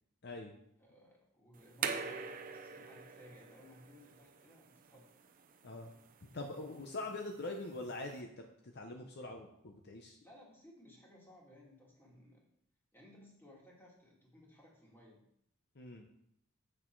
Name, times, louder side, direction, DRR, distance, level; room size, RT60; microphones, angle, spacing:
voice 1, 0.8-5.1 10.2-12.5 12.9-15.2, left 1 dB, 10° left, -3 dB, 2.1 m, -59 dB
sound 1, 1.5-8.2, right 6 dB, 40° right, 0.6 m, -45 dB
voice 2, 6.3-10.2 15.8-16.1, left 2 dB, 50° left, 3 dB, 0.8 m, -44 dB
7.9 x 6.2 x 4.6 m, 0.74 s
head